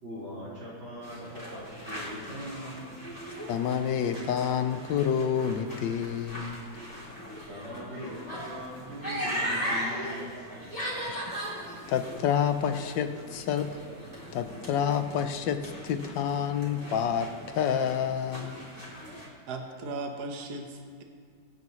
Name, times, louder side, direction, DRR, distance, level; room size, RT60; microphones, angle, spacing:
voice 1, 0.0-3.1 7.5-10.9, equal, 85° right, -9 dB, 5.1 m, -41 dB
sound 1, 1.0-19.3, equal, 10° left, 2.9 m, -39 dB
voice 2, 3.5-6.7 11.1-11.2 11.9-13.8 14.3-18.6, left 8 dB, 75° left, 9 dB, 1.4 m, -28 dB
voice 3, 19.5-21.0, right 2 dB, 60° right, 3 dB, 1.7 m, -37 dB
23.5 x 9.2 x 3.1 m, 2.1 s
omnidirectional pair, 2.1 m